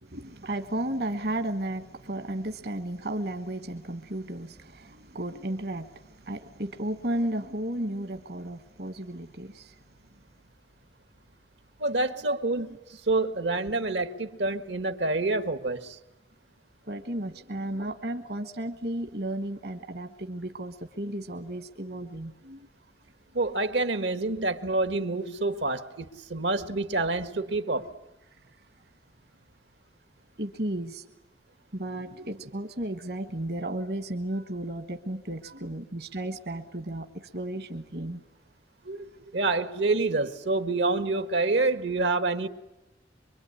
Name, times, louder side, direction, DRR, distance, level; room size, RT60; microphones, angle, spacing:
voice 1, 0.0-9.7 12.1-12.8 16.8-22.7 30.4-31.0 31.7-38.2 38.8-39.3, right 1 dB, 60° right, 1.3 m, -34 dB
voice 2, 11.8-12.7 13.1-16.0 23.3-27.9 39.3-42.5, right 2 dB, 80° right, 1.6 m, -27 dB
25.0 x 24.0 x 9.7 m
head